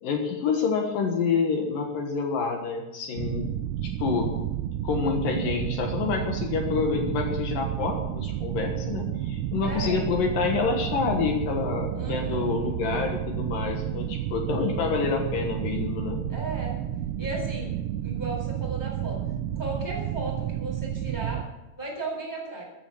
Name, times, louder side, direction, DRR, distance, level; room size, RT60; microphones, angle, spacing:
voice 1, 0.0-3.5 3.8-4.3 4.8-16.2, left 5 dB, 70° left, 3 dB, 2.2 m, -27 dB
sound 1, 3.2-21.5, right 11 dB, 85° right, 3.3 m, -31 dB
voice 2, 9.6-10.0 11.9-12.5 16.3-16.8 17.2-17.7 18.0-19.2 19.5-21.4 21.8-22.6, right 2 dB, 5° left, -2 dB, 3.0 m, -35 dB
13.5 x 9.9 x 6.9 m, 0.99 s
omnidirectional pair, 5.9 m